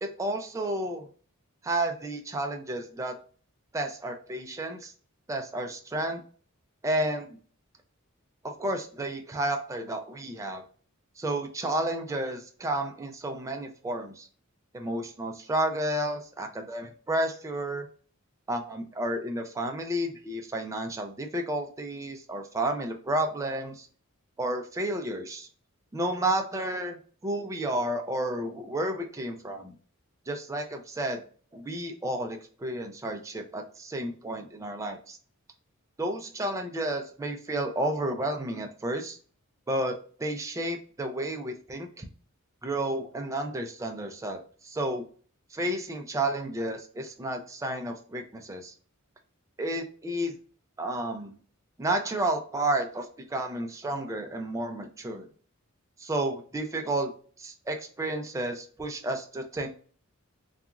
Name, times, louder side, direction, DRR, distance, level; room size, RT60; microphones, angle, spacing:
voice 1, 0.0-1.1 1.6-3.1 3.7-4.9 5.3-6.2 6.8-7.3 8.4-10.6 11.2-14.3 14.7-17.9 18.5-23.9 24.4-25.5 25.9-27.0 27.2-29.7 30.3-31.2 31.5-35.2 36.0-39.2 39.7-42.1 42.6-44.4 44.6-45.0 45.5-48.7 49.6-50.3 50.8-51.3 51.8-55.3 56.0-57.1 57.4-59.7, right 1 dB, 15° right, 4 dB, 0.3 m, -31 dB
2.8 x 2.4 x 2.3 m, 0.42 s
head